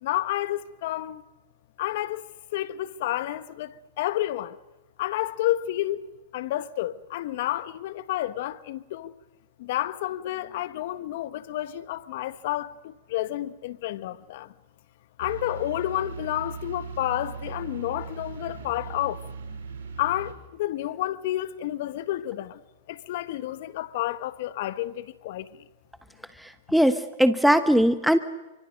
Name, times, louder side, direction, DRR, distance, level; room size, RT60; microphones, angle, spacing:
voice 1, 0.0-1.2 1.8-2.2 2.5-4.6 5.0-6.1 6.3-9.1 9.6-14.5 15.2-19.2 20.0-22.6 22.9-25.6, left 14 dB, 60° left, 1.3 m, -30 dB
sound 1, 15.2-20.3, right 5 dB, 75° right, 5.5 m, -39 dB
voice 2, 26.7-28.2, equal, ahead, 1.1 m, -20 dB
29.0 x 25.0 x 6.6 m
hypercardioid pair, 120°, 0 cm